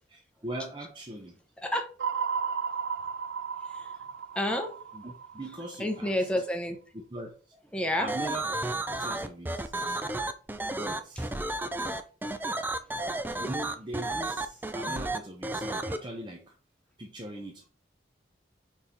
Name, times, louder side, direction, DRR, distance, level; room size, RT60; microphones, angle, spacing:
voice 1, 0.1-1.4 4.9-6.4 6.9-7.5 8.0-8.6 9.0-9.7 10.7-11.3 13.4-16.5 17.0-17.7, right 1 dB, 25° right, 1 dB, 0.8 m, -40 dB
sound 1, 2.0-6.2, right 6 dB, 85° right, 0.4 m, -34 dB
voice 2, 4.4-4.7 5.8-6.8 7.7-8.1, left 1 dB, 5° left, 3 dB, 0.8 m, -28 dB
sound 2, 8.1-16.0, right 2 dB, 10° right, 0.4 m, -32 dB
5.2 x 4.6 x 4.2 m, 0.39 s
head